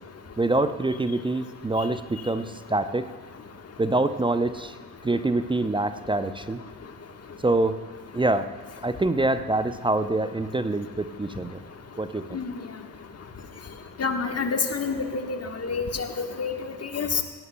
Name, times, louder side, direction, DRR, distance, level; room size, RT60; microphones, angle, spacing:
voice 1, 0.4-3.1 3.8-4.7 5.0-6.6 7.4-7.8 8.1-8.5 8.8-11.6 12.0-12.4, right 2 dB, 10° right, 11 dB, 0.6 m, -25 dB
voice 2, 14.0-17.2, left 5 dB, 30° left, 5 dB, 1.4 m, -28 dB
18.5 x 17.5 x 2.3 m, 1.3 s
figure-of-eight pair, 50°, 48 cm